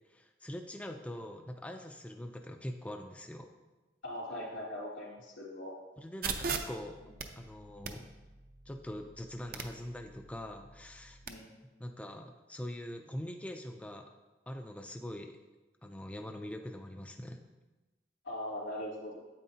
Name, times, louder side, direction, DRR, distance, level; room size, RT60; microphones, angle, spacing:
voice 1, 0.1-3.5 6.0-7.0 7.4-8.1 8.7-11.2 11.8-14.1 14.5-15.4 15.8-17.4, left 1 dB, 5° left, 4 dB, 0.3 m, -43 dB
voice 2, 4.0-5.7 11.3-11.5 18.2-19.2, left 1 dB, 85° left, -4 dB, 3.0 m, -40 dB
sound 1, 6.2-11.3, right 5 dB, 50° right, 0.6 m, -41 dB
9.0 x 8.3 x 2.8 m, 1.1 s
head